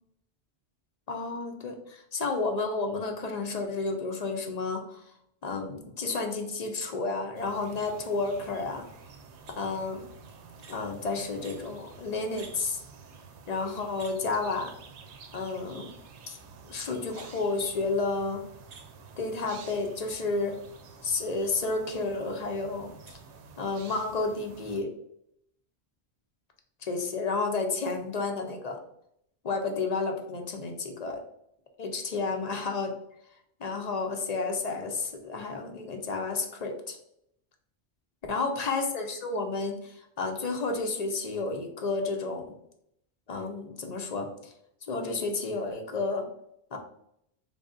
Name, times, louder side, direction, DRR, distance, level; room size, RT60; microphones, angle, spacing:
voice 1, 1.1-5.0 5.4-8.9 9.6-10.0 10.7-12.8 13.5-14.7 15.3-15.9 16.3-16.4 16.6-18.4 19.2-20.6 21.0-23.2 23.6-24.9 26.9-28.8 29.4-31.2 31.8-33.0 33.6-37.0 38.3-42.6 43.3-44.5 44.9-46.3 46.7-46.8, left 3 dB, 50° left, 4 dB, 0.5 m, -31 dB
sound 1, 7.3-24.8, right 5 dB, 85° right, 0.9 m, -50 dB
3.8 x 3.4 x 2.5 m, 0.74 s
omnidirectional pair, 1.1 m